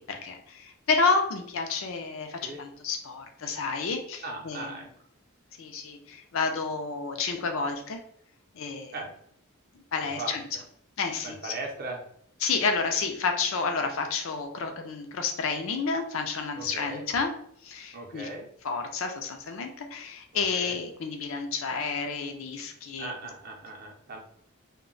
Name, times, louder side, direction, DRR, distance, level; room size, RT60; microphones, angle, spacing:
voice 1, 0.0-4.7 5.6-8.0 8.5-8.9 9.9-10.4 11.0-11.5 12.4-17.3 17.6-18.3 18.6-23.1, left 4 dB, 70° left, 4 dB, 0.5 m, -30 dB
voice 2, 4.2-4.9 8.9-9.1 10.0-10.4 11.2-12.0 16.6-17.0 17.9-18.5 20.3-20.8 23.0-24.2, right 2 dB, 45° right, 1 dB, 0.6 m, -38 dB
2.2 x 2.0 x 3.8 m, 0.67 s
head